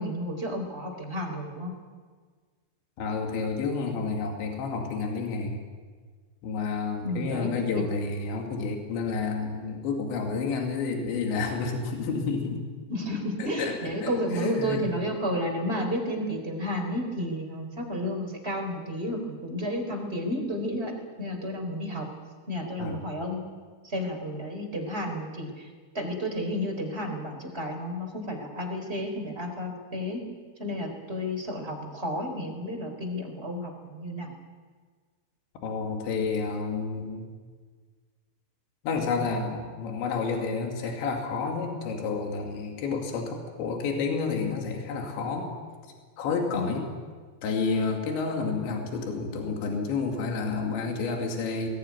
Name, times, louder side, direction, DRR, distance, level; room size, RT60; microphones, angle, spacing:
voice 1, 0.0-1.7 7.0-7.5 12.9-22.1 22.5-23.4 23.8-25.7 25.9-30.2 30.6-34.3 46.5-46.8, equal, 15° right, 2 dB, 3.8 m, -32 dB
voice 2, 3.0-5.6 6.4-12.6 13.4-13.8 14.0-14.8 22.8-23.0 35.6-37.3 38.8-45.5 46.2-46.9 47.4-51.7, left 4 dB, 80° left, 2 dB, 4.6 m, -30 dB
21.5 x 19.0 x 9.6 m, 1.5 s
omnidirectional pair, 5.2 m